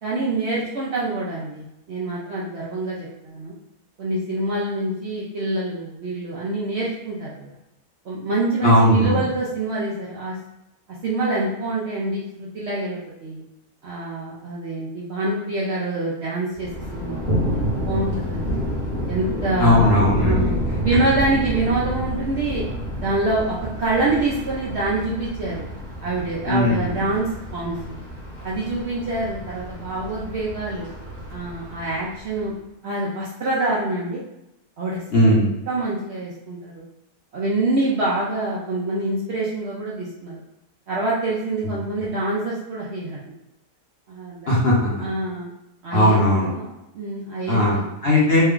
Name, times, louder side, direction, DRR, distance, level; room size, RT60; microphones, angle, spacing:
voice 1, 0.0-3.5 4.0-7.5 8.0-10.3 11.0-13.4 13.8-18.4 19.1-20.6 20.8-22.7 23.0-25.7 26.0-28.0 28.4-30.9 31.3-32.5 32.8-34.2 34.8-35.2 35.7-36.8 37.3-40.4 40.9-43.2 44.1-44.7 45.0-45.5 45.8-47.8, right 2 dB, 60° right, -6 dB, 0.7 m, -26 dB
voice 2, 8.6-9.2 19.6-20.5 26.5-27.1 35.1-35.5 41.6-41.8 44.5-45.0 45.9-46.5 47.5-48.4, left 1 dB, 45° left, -6 dB, 0.9 m, -18 dB
Thunder, 16.5-32.5, equal, 35° right, 1.0 m, -29 dB
3.3 x 2.2 x 3.6 m, 0.88 s
omnidirectional pair, 1.6 m